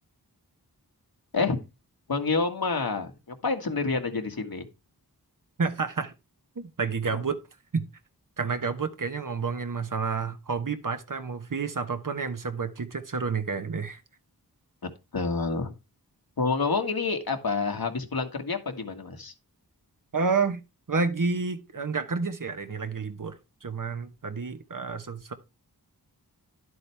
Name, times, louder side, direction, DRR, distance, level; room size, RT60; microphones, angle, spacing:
voice 1, 2.1-3.1 3.4-4.7 15.1-15.7 16.4-19.3, left 4 dB, 65° left, 1.8 m, -28 dB
voice 2, 5.6-6.1 6.6-7.4 7.7-7.8 8.4-14.0 20.1-20.6 20.9-25.3, right 4 dB, 55° right, 1.2 m, -30 dB
11.0 x 7.8 x 3.4 m
wide cardioid pair, 55°, 39 cm